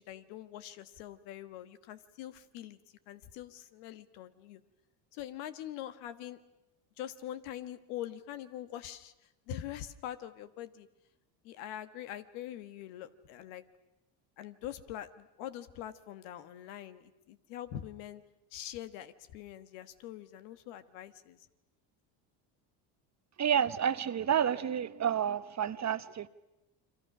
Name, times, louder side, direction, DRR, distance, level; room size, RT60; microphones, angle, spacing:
voice 1, 0.0-2.8 3.1-4.6 5.1-6.4 7.0-9.1 9.5-10.9 11.4-13.6 14.4-18.2 18.5-21.4, left 11 dB, 80° left, 11 dB, 1.5 m, -44 dB
voice 2, 23.4-26.3, right 8 dB, 35° right, 13 dB, 1.0 m, -30 dB
30.0 x 23.5 x 6.1 m, 0.94 s
supercardioid pair, 85°, 50 cm